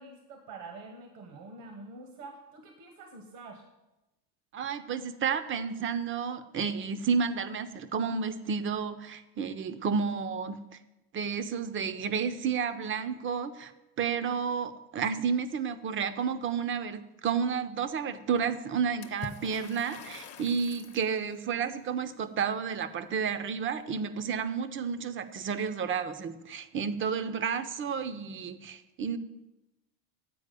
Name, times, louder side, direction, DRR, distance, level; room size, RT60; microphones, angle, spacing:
voice 1, 0.0-3.6, right 3 dB, 70° right, 4 dB, 1.2 m, -46 dB
voice 2, 4.5-10.6 11.1-13.7 14.0-29.2, right 6 dB, 30° right, 12 dB, 0.5 m, -31 dB
Water / Splash splatter, 19.0-21.1, left 6 dB, 35° left, 0.8 m, -45 dB
8.5 x 4.6 x 6.6 m, 0.98 s
supercardioid pair, 100°, 42 cm